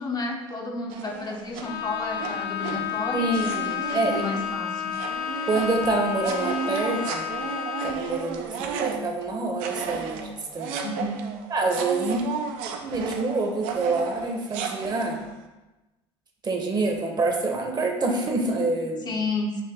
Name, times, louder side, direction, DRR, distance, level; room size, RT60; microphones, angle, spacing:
voice 1, 0.0-3.4 3.7-5.0 10.8-11.2 19.0-19.6, left 3 dB, 30° left, 2 dB, 0.7 m, -31 dB
Hand Blender, 0.9-1.7 2.2-2.9 3.3-9.3 9.6-15.3, right 6 dB, 70° right, 0.5 m, -34 dB
Bowed string instrument, 1.6-8.1, left 9 dB, 70° left, 0.6 m, -31 dB
voice 2, 3.1-4.3 5.4-7.2 7.8-10.7 11.5-12.3 12.8-15.2 16.4-19.1, right 3 dB, 30° right, 2 dB, 0.9 m, -26 dB
5.9 x 2.5 x 3.5 m, 1.1 s
hypercardioid pair, 80°, 14 cm